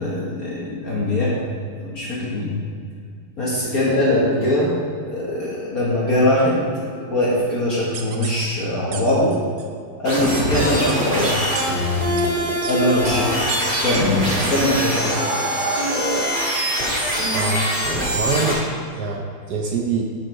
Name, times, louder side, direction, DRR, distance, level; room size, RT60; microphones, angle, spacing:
voice 1, 0.0-1.3 1.8-2.6 3.4-4.7 5.1-9.3 10.0-11.4 12.7-13.3 13.8-14.2 14.5-15.1, left 1 dB, 45° left, -7 dB, 1.7 m, -21 dB
sound 1, 7.9-8.4 8.9-9.0 9.3-9.7 10.3-10.4 10.9-11.0 11.6-11.7 12.2-12.3 12.6-12.8 13.0-13.2 13.5-13.6 13.9-14.0 14.5-14.6, right 6 dB, 85° right, 0.6 m, -32 dB
sound 2, 10.0-18.5, equal, 25° right, 2.1 m, -22 dB
voice 2, 17.3-17.7 18.1-18.6 18.9-20.0, right 4 dB, 65° right, 1 dB, 1.1 m, -24 dB
7.7 x 7.6 x 4.6 m, 2.2 s
omnidirectional pair, 2.3 m